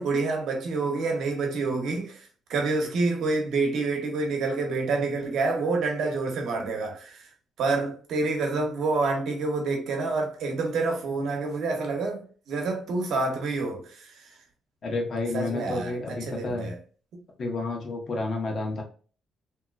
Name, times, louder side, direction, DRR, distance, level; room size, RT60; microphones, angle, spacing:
voice 1, 0.0-7.3 7.6-14.3 15.3-16.8, right 3 dB, 75° right, 0.9 m, -28 dB
voice 2, 14.8-16.7 17.4-18.8, left 2 dB, 50° left, 1.1 m, -30 dB
2.9 x 2.9 x 2.4 m
cardioid pair, 90°, 0 cm